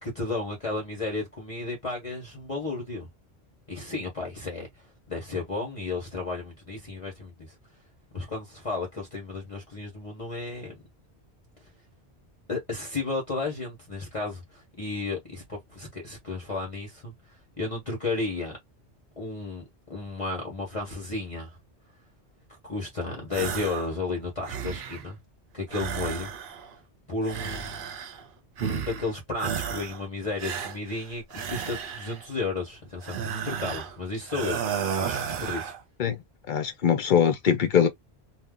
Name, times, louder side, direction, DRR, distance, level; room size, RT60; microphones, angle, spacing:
voice 1, 0.0-3.1 3.7-7.5 8.1-10.8 12.5-17.1 17.6-18.6 19.2-19.6 19.9-21.6 22.6-25.2 25.5-26.3 26.7-26.8 27.1-27.8 28.6-34.6 35.0-35.7, left 3 dB, 30° left, 1.0 m, -33 dB
sound 1, 23.3-23.9 24.2-25.1 25.7-26.7 27.2-28.2 28.6-29.1 29.4-30.0 30.4-32.2 33.0-34.0 34.3-35.8, right 7 dB, 60° right, 0.7 m, -33 dB
voice 2, 36.5-37.9, left 8 dB, 55° left, 0.7 m, -22 dB
2.7 x 2.1 x 3.6 m
omnidirectional pair, 1.1 m